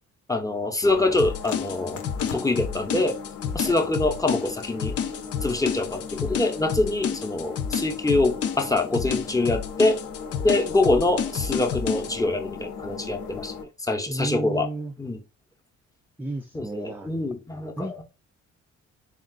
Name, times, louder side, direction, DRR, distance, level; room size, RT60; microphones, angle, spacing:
voice 1, 0.3-2.0 2.3-3.2 3.5-5.0 5.4-10.0 10.4-14.7 15.0-15.2 16.5-18.0, left 2 dB, 10° left, 0.8 m, -25 dB
sound 1, 0.8-13.6, left 6 dB, 70° left, 1.0 m, -38 dB
sound 2, 1.2-12.1, left 7 dB, 50° left, 0.6 m, -30 dB
voice 2, 14.1-14.9 16.2-17.1 17.8-18.0, right 2 dB, 5° right, 0.4 m, -33 dB
3.7 x 2.4 x 3.7 m
cardioid pair, 90°, 30 cm